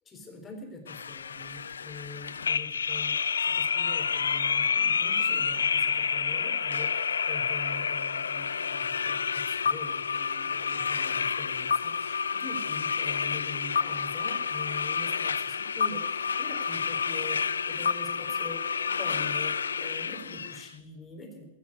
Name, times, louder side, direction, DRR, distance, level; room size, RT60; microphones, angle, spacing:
voice 1, 0.1-21.4, left 2 dB, 20° left, 3 dB, 3.8 m, -44 dB
sound 1, 0.9-20.6, left 6 dB, 90° left, 0.4 m, -29 dB
16.0 x 7.3 x 8.7 m, 1.0 s
hypercardioid pair, 120°, 0 cm